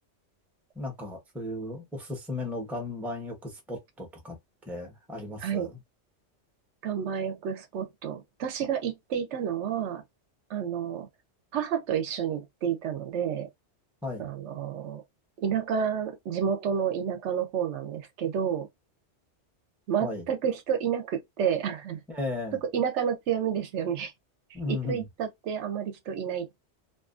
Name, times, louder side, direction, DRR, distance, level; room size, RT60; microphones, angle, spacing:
voice 1, 0.7-4.4 4.7-5.8 14.0-14.3 20.0-20.2 22.1-22.6 24.5-25.1, left 2 dB, ahead, 0.5 m, -35 dB
voice 2, 6.8-10.0 10.5-11.1 11.5-13.5 14.2-15.0 15.4-18.7 19.9-22.0 22.6-24.1 24.7-26.6, right 8 dB, 75° right, 0.9 m, -30 dB
2.5 x 2.4 x 2.4 m
omnidirectional pair, 1.2 m